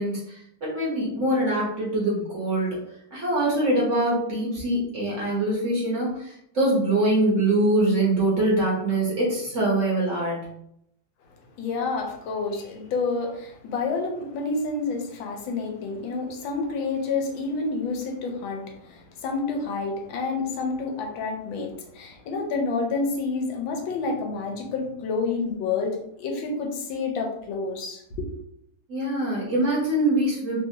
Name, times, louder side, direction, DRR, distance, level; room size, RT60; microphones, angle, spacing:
voice 1, 0.0-2.8 3.1-10.5 28.9-30.6, right 1 dB, 50° right, -5 dB, 1.1 m, -24 dB
voice 2, 11.6-28.3, left 4 dB, 85° left, 2 dB, 1.4 m, -29 dB
3.4 x 2.7 x 2.7 m, 0.74 s
omnidirectional pair, 2.1 m